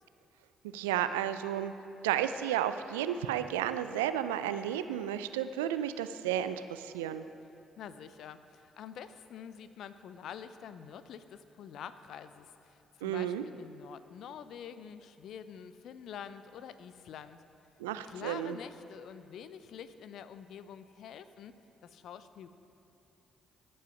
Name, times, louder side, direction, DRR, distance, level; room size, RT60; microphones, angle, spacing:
voice 1, 0.7-1.7 2.0-7.3 13.0-13.4 17.8-18.6, right 11 dB, 85° right, 11 dB, 0.3 m, -32 dB
voice 2, 7.8-17.4 18.0-21.5 21.8-22.6, left 8 dB, 65° left, 12 dB, 0.5 m, -47 dB
15.5 x 5.5 x 5.2 m, 2.8 s
hypercardioid pair, 50°, 0 cm